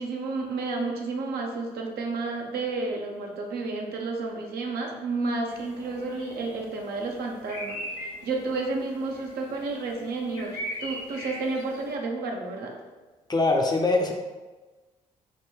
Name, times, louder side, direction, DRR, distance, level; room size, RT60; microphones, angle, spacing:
voice 1, 0.0-12.7, right 3 dB, 60° right, 1 dB, 0.7 m, -31 dB
sound 1, 5.5-12.0, equal, 80° left, 0.6 m, -40 dB
voice 2, 13.3-14.1, left 2 dB, 25° left, 2 dB, 0.6 m, -22 dB
3.8 x 2.2 x 3.2 m, 1.3 s
hypercardioid pair, 45°, 18 cm